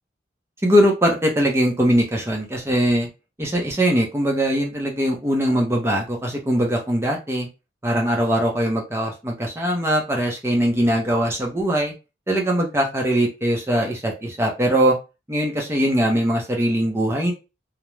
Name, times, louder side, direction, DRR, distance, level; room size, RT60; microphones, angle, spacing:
voice 1, 0.6-3.1 3.4-7.5 7.8-11.9 12.3-15.0 15.3-17.3, equal, 15° right, 0 dB, 0.6 m, -21 dB
2.4 x 2.0 x 3.0 m, 0.28 s
head